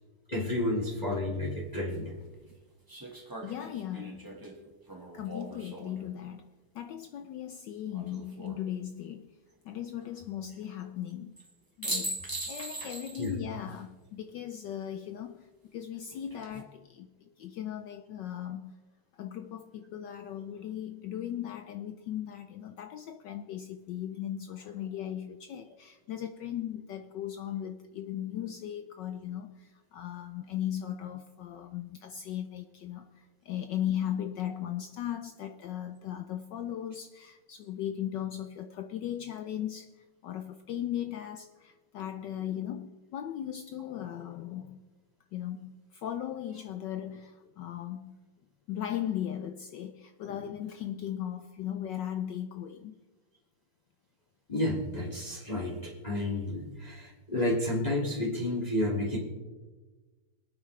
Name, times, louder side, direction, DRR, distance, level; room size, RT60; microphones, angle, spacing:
voice 1, 0.3-2.1 13.2-13.4 54.5-59.2, left 1 dB, 20° left, -4 dB, 2.1 m, -31 dB
voice 2, 1.4-1.8 3.4-4.5 5.1-6.4 6.7-9.3 9.6-11.3 11.8-18.8 19.2-33.1 33.4-39.9 40.2-44.8 45.3-48.2 48.7-52.9 55.3-55.4, left 10 dB, 75° left, 8 dB, 1.1 m, -37 dB
sound 1, 1.4-1.5 2.9-6.1 7.9-8.6 11.4-11.5 11.8-13.4 13.7-13.8 16.1-16.6, right 1 dB, 10° right, 1.2 m, -40 dB
23.5 x 9.1 x 3.2 m, 1.3 s
omnidirectional pair, 2.4 m